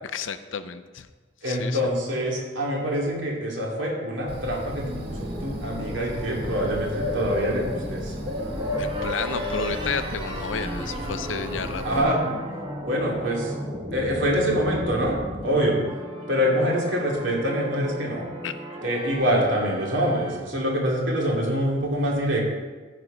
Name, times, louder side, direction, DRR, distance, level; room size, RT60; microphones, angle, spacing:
voice 1, 0.1-1.1 1.4-1.8 8.8-11.8 18.4-18.5, left 6 dB, 85° left, 11 dB, 0.6 m, -31 dB
voice 2, 1.4-8.1 11.8-12.2 12.9-13.5 13.9-15.1 15.4-15.8 16.3-18.2 18.8-22.4, equal, 75° right, -2 dB, 2.7 m, -25 dB
Bird, 4.3-12.0, left 1 dB, 60° right, 1.7 m, -33 dB
sound 1, 4.7-20.4, equal, 25° right, 1.2 m, -35 dB
14.0 x 5.1 x 5.1 m, 1.4 s
head